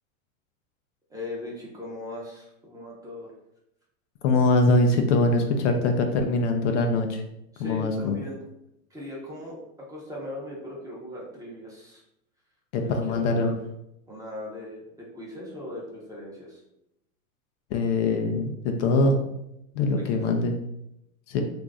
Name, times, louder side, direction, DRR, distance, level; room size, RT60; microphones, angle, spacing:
voice 1, 1.1-3.3 7.5-8.4 8.9-9.6 9.9-12.0 12.8-13.6 14.1-16.6 19.8-20.2, left 1 dB, 10° right, -4 dB, 0.8 m, -39 dB
voice 2, 4.2-7.2 7.6-8.2 12.7-13.5 17.7-19.2 19.7-20.5 21.3-21.4, left 2 dB, 60° left, 4 dB, 0.6 m, -23 dB
2.9 x 2.6 x 3.5 m, 0.83 s
hypercardioid pair, 125°, 42 cm